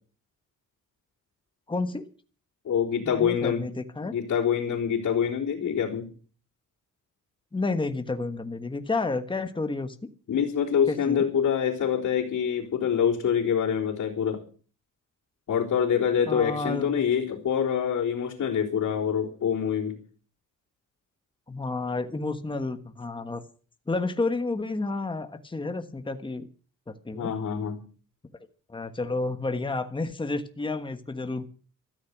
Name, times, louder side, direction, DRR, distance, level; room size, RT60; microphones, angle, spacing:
voice 1, 1.7-2.1 3.0-4.1 7.5-10.1 10.9-11.2 16.2-17.0 21.5-23.4 23.9-26.5 26.9-27.3 28.7-31.5, left 3 dB, 15° left, 8 dB, 1.4 m, -30 dB
voice 2, 2.6-3.6 4.1-6.1 10.3-14.4 15.5-20.0 27.1-27.8, left 8 dB, 60° left, -6 dB, 3.9 m, -25 dB
15.0 x 13.5 x 6.0 m, 0.40 s
cardioid pair, 115°, 32 cm